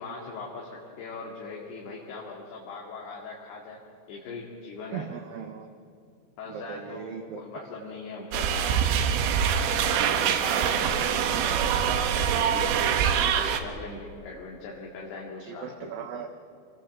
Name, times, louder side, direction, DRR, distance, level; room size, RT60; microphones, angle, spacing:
voice 1, 0.0-3.8 4.1-5.1 6.4-11.6 12.2-16.1, left 4 dB, 65° left, -3 dB, 4.3 m, -40 dB
voice 2, 4.9-5.7 6.5-7.4 13.2-13.5 15.4-16.3, right 8 dB, 70° right, 4 dB, 2.4 m, -38 dB
sound 1, 8.3-13.6, right 8 dB, 85° right, 3.5 m, -24 dB
27.0 x 20.0 x 7.5 m, 2.4 s
omnidirectional pair, 5.1 m